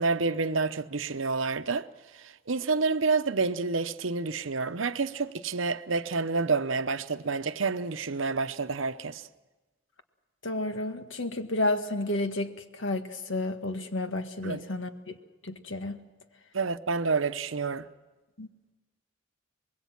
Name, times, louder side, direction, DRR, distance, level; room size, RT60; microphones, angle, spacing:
voice 1, 0.0-1.9 2.1-9.3 14.4-14.6 16.5-17.9, right 4 dB, 80° right, 0.8 m, -29 dB
voice 2, 10.4-14.9 15.4-16.0 18.4-18.5, left 2 dB, 70° left, 1.7 m, -31 dB
25.0 x 21.5 x 6.0 m
head